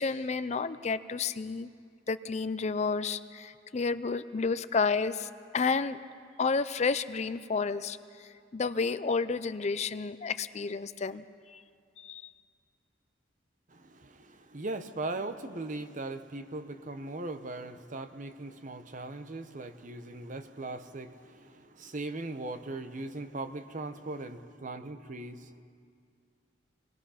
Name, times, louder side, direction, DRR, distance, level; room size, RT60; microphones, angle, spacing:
voice 1, 0.0-1.7 2.1-5.3 5.5-6.0 6.4-8.0 8.5-11.2 11.5-11.6 12.0-12.3, left 4 dB, 35° left, 0.4 m, -30 dB
voice 2, 13.7-25.6, right 2 dB, 45° right, 0.8 m, -39 dB
27.0 x 19.5 x 5.7 m
head